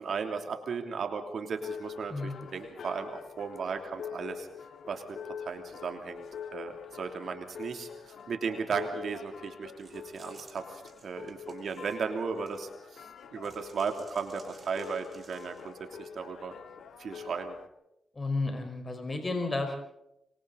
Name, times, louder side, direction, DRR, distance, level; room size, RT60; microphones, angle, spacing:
voice 1, 0.0-4.5 4.9-6.2 6.5-16.5 17.0-17.5, right 5 dB, 65° right, 5 dB, 3.1 m, -36 dB
sound 1, 1.5-17.7, left 7 dB, 75° left, 1.8 m, -45 dB
voice 2, 2.1-2.5 18.1-19.8, left 3 dB, 30° left, 4 dB, 4.9 m, -32 dB
sound 2, 9.8-12.8 13.4-15.8, right 4 dB, 35° right, 6.1 m, -58 dB
26.5 x 24.5 x 4.1 m, 0.82 s
cardioid pair, 90°, 0 cm